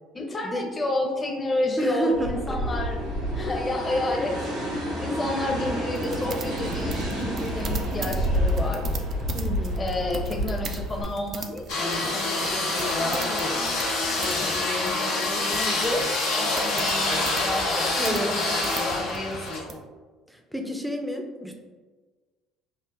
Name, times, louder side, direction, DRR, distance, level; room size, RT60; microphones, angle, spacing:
voice 1, 0.1-3.0 3.3-8.9 9.7-13.8 14.2-16.1 16.4-19.8, left 2 dB, 30° left, 0 dB, 0.9 m, -31 dB
voice 2, 1.8-2.8 5.2-5.3 9.3-9.9 18.0-18.3 20.3-21.6, right 1 dB, ahead, 2 dB, 0.6 m, -30 dB
sound 1, 2.1-11.0, equal, 90° right, 1.3 m, -29 dB
sound 2, 5.9-19.8, right 5 dB, 50° right, 0.4 m, -40 dB
sound 3, 11.7-19.6, left 2 dB, 80° left, 0.9 m, -26 dB
5.5 x 2.1 x 2.5 m, 1.4 s
hypercardioid pair, 70°, 0 cm